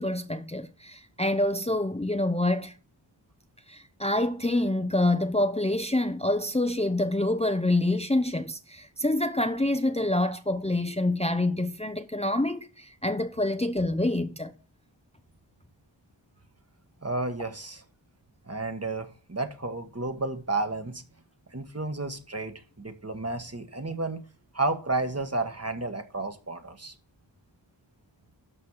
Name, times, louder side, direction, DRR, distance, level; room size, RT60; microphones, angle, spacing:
voice 1, 0.0-2.7 3.7-14.5, left 1 dB, 15° left, 0.8 m, -26 dB
voice 2, 17.0-17.8 18.5-21.0 21.5-24.2 24.5-26.9, right 2 dB, 30° right, 1.5 m, -32 dB
12.5 x 4.2 x 7.2 m
wide cardioid pair, 45°, 46 cm